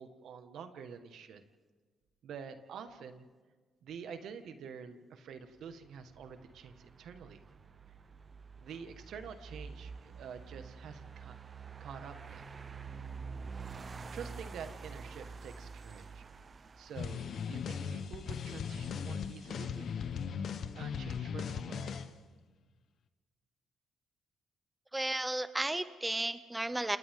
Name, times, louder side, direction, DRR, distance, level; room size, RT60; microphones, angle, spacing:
voice 1, 0.0-1.4 2.2-3.3 3.8-7.4 8.6-11.4 11.8-12.4 14.1-16.3 16.8-19.9 20.8-22.0, right 6 dB, 70° right, 8 dB, 1.6 m, -47 dB
sound 1, 5.6-20.5, right 5 dB, 35° right, 1.0 m, -48 dB
sound 2, 16.9-22.1, left 7 dB, 60° left, 1.1 m, -38 dB
voice 2, 24.9-27.0, right 1 dB, 10° right, 12 dB, 0.7 m, -33 dB
28.5 x 28.0 x 3.8 m, 1.4 s
cardioid pair, 90°, 0 cm